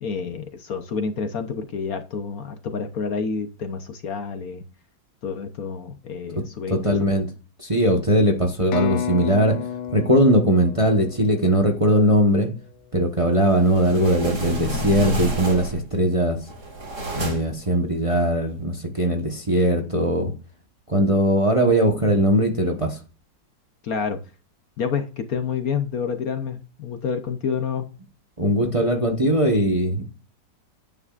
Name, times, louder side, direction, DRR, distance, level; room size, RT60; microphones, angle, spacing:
voice 1, 0.0-4.6 5.2-7.1 23.8-24.2 24.8-27.9, left 6 dB, 60° left, 1.2 m, -28 dB
voice 2, 6.7-7.3 7.6-9.6 9.9-12.5 12.9-16.4 17.1-20.3 20.9-23.0 28.4-30.1, right 1 dB, 20° right, 1.0 m, -20 dB
sound 1, 8.7-12.5, left 9 dB, 80° left, 1.5 m, -31 dB
sound 2, 13.5-15.9 16.4-17.6, equal, 60° right, 3.3 m, -29 dB
10.5 x 9.5 x 2.5 m
omnidirectional pair, 2.0 m